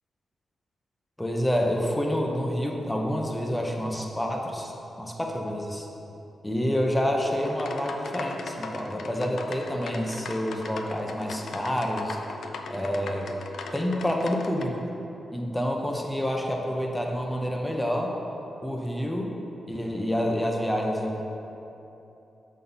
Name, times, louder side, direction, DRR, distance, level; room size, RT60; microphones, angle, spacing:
voice 1, 1.2-4.7 5.0-5.9 6.4-12.2 12.7-13.3 13.7-14.8 15.3-18.2 18.6-19.3 19.7-21.2, equal, 10° left, 1 dB, 0.8 m, -28 dB
sound 1, 7.3-14.6, left 3 dB, 75° left, 0.4 m, -39 dB
6.3 x 4.0 x 5.5 m, 3.0 s
cardioid pair, 75°, 0 cm